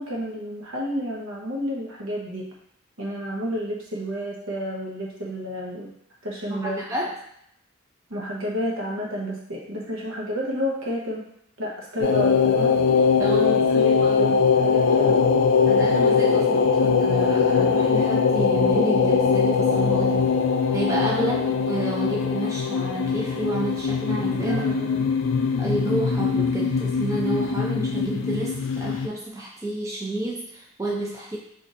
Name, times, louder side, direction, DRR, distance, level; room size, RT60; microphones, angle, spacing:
voice 1, 0.0-2.5 3.0-5.9 6.2-6.8 8.1-11.2 11.6-12.8 13.2-15.3 21.2-21.5 24.4-25.0, equal, 75° right, -3 dB, 0.9 m, -30 dB
voice 2, 6.5-7.2 13.2-14.3 15.7-20.3 20.7-24.6 25.6-31.4, right 2 dB, 15° right, -3 dB, 0.3 m, -30 dB
sound 1, 12.0-29.1, left 5 dB, 60° left, 0.3 m, -21 dB
4.0 x 2.6 x 2.5 m, 0.72 s
head